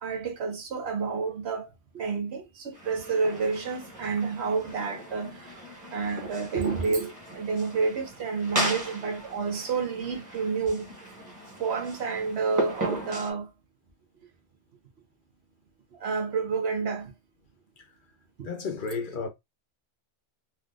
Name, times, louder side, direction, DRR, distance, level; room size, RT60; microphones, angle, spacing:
voice 1, 0.0-5.5 5.9-10.9 11.6-13.5 15.9-17.1 18.4-18.5, right 5 dB, 75° right, 1.1 m, -29 dB
sound 1, 2.7-13.3, right 1 dB, 15° right, 1.1 m, -37 dB
voice 2, 18.4-19.3, left 4 dB, 60° left, 0.6 m, -32 dB
3.5 x 2.5 x 2.3 m
omnidirectional pair, 1.1 m